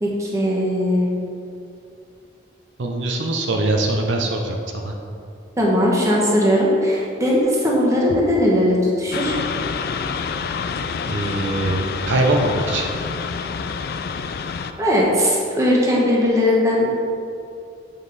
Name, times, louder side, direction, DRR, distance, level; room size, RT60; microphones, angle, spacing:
voice 1, 0.0-1.2 5.6-9.4 14.8-17.0, left 1 dB, 15° right, -4 dB, 1.2 m, -19 dB
voice 2, 2.8-4.9 11.1-12.8, right 2 dB, 75° right, 1 dB, 0.7 m, -22 dB
sound 1, 9.1-14.7, left 5 dB, 55° left, 0.3 m, -27 dB
7.5 x 5.0 x 4.0 m, 2.5 s
head